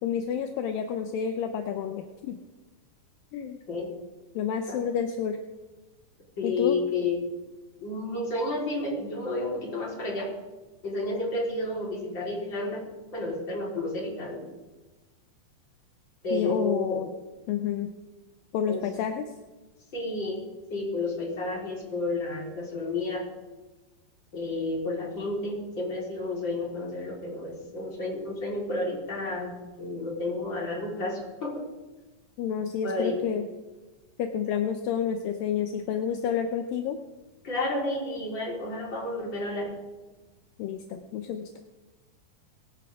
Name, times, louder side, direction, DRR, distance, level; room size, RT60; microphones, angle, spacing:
voice 1, 0.0-2.4 3.3-3.6 4.4-5.4 6.4-6.8 16.3-17.1 17.5-17.9 18.5-19.3 32.4-33.5 34.2-37.0 40.6-41.5, left 8 dB, 80° left, 6 dB, 2.5 m, -29 dB
voice 2, 6.4-7.2 7.8-10.3 10.8-12.8 13.1-14.4 16.2-17.0 18.7-18.9 19.9-20.4 20.7-23.2 24.3-31.5 32.8-33.2 37.4-39.8, left 2 dB, 30° left, -3 dB, 4.7 m, -31 dB
23.0 x 13.0 x 3.7 m, 1.2 s
omnidirectional pair, 4.2 m